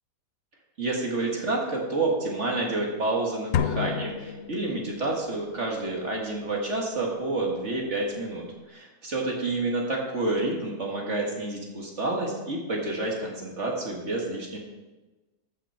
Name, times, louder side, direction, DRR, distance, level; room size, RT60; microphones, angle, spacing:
voice 1, 0.8-14.6, right 2 dB, 45° right, -1 dB, 1.9 m, -29 dB
sound 1, 3.5-5.2, left 8 dB, 75° left, 0.6 m, -30 dB
13.5 x 6.1 x 4.3 m, 1.1 s
omnidirectional pair, 1.7 m